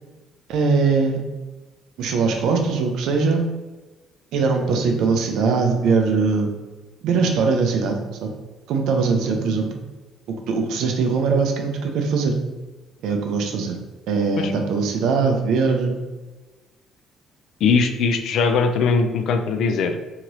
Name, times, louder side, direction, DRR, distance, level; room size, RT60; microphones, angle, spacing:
voice 1, 0.5-1.2 2.0-3.4 4.3-6.5 7.0-8.3 8.7-9.8 10.5-12.4 13.0-13.8 14.1-16.0, right 4 dB, 75° right, 3 dB, 0.5 m, -21 dB
voice 2, 17.6-20.0, left 4 dB, 70° left, 7 dB, 0.3 m, -20 dB
2.9 x 2.8 x 2.6 m, 1.2 s
supercardioid pair, 75°, 0 cm